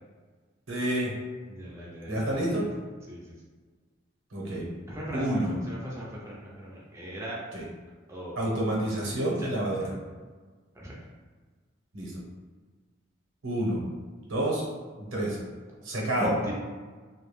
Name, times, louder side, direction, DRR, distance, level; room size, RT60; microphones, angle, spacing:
voice 1, 0.7-1.1 2.1-2.7 4.3-4.7 5.1-5.6 7.5-7.7 8.4-9.9 11.9-12.1 13.4-13.8 14.3-14.6 15.1-15.4 15.8-16.3, right 1 dB, 85° right, -3 dB, 0.8 m, -28 dB
voice 2, 1.5-2.3 3.1-3.2 4.9-5.4 5.7-7.4 8.1-8.5 9.4-9.5 10.8-10.9 16.2-16.5, equal, 15° right, -6 dB, 0.4 m, -37 dB
2.3 x 2.1 x 3.1 m, 1.4 s
head